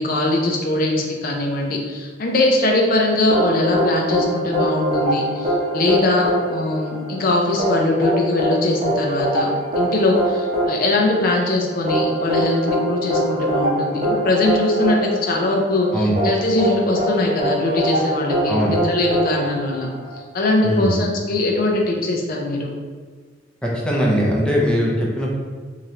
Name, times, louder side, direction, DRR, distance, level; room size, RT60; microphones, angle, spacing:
voice 1, 0.0-9.5 9.8-19.9 20.3-22.7, left 2 dB, 50° left, 0 dB, 0.5 m, -21 dB
sound 1, 3.3-20.2, right 1 dB, 35° right, 0.7 m, -23 dB
voice 2, 20.6-21.0 23.6-25.3, equal, 5° left, -4 dB, 0.6 m, -20 dB
3.6 x 3.1 x 2.8 m, 1.5 s
head